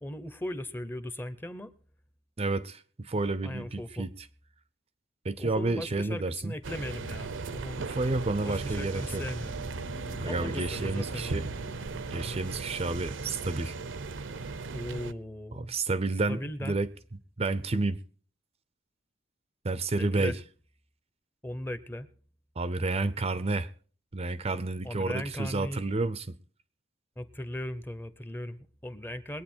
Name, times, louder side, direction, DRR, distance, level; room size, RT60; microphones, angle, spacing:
voice 1, 0.0-1.7 3.4-4.1 5.4-7.9 8.4-9.6 10.2-11.3 14.7-15.7 16.3-16.8 20.0-20.4 21.4-22.1 24.8-25.8 27.2-29.4, left 1 dB, 10° left, 0.8 m, -38 dB
voice 2, 2.4-4.1 5.2-6.5 7.8-9.2 10.2-11.4 12.1-13.7 15.5-16.9 17.4-18.0 19.6-20.4 22.6-23.7 24.1-26.4, right 3 dB, 30° right, 0.6 m, -30 dB
sound 1, 6.6-15.1, right 3 dB, 70° right, 0.7 m, -37 dB
sound 2, 9.0-13.8, left 2 dB, 70° left, 1.0 m, -49 dB
21.5 x 9.1 x 4.4 m
head